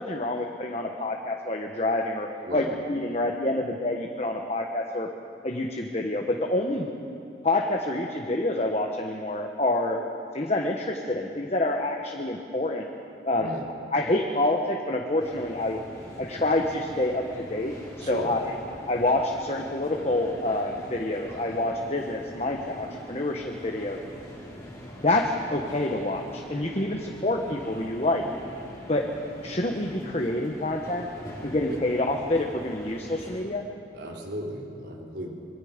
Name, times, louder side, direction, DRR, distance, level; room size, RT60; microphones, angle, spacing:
voice 1, 0.0-5.1 5.4-6.9 7.4-10.0 10.3-12.9 13.2-13.5 13.9-15.8 16.2-18.5 18.9-24.0 25.0-28.2 28.9-29.1 29.4-31.1 31.4-33.6, left 2 dB, 35° left, 2 dB, 1.3 m, -27 dB
voice 2, 2.4-2.7 13.3-13.6 18.0-18.3 31.7-31.8 34.0-35.3, equal, 70° right, -1 dB, 3.8 m, -35 dB
sound 1, 15.2-33.4, equal, 20° left, 4.5 m, -43 dB
26.0 x 23.0 x 5.2 m, 2.5 s
head